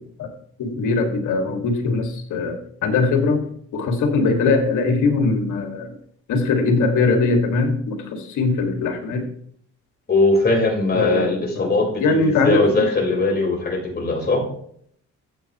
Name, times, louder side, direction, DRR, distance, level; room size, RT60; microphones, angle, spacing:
voice 1, 0.6-2.6 2.8-3.4 3.7-5.9 6.3-9.3 10.9-11.7 12.0-12.6, left 3 dB, 80° left, 4 dB, 2.2 m, -21 dB
voice 2, 10.1-14.4, left 2 dB, 35° left, -1 dB, 4.7 m, -20 dB
12.5 x 8.2 x 3.1 m, 0.64 s
cardioid pair, 90°, 30 cm